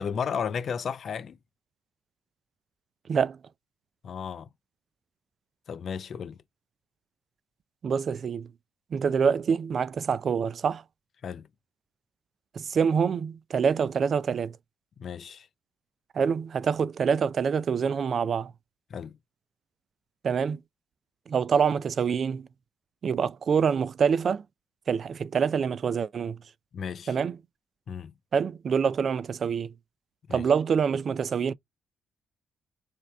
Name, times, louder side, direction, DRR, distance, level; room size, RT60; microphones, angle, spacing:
voice 1, 0.0-1.4 4.0-4.5 5.7-6.4 11.2-11.5 15.0-15.5 18.9-19.2 26.7-27.2 27.9-28.1 30.3-30.5, left 7 dB, 55° left, 0.4 m, -34 dB
voice 2, 3.1-3.4 7.8-8.5 8.9-10.8 12.5-14.6 16.1-18.5 20.2-20.6 21.3-22.5 23.0-24.4 24.9-26.4 27.1-27.4 28.3-29.7 30.3-31.5, right 6 dB, 50° right, 0.4 m, -26 dB
3.4 x 2.8 x 4.3 m
cardioid pair, 90°, 0 cm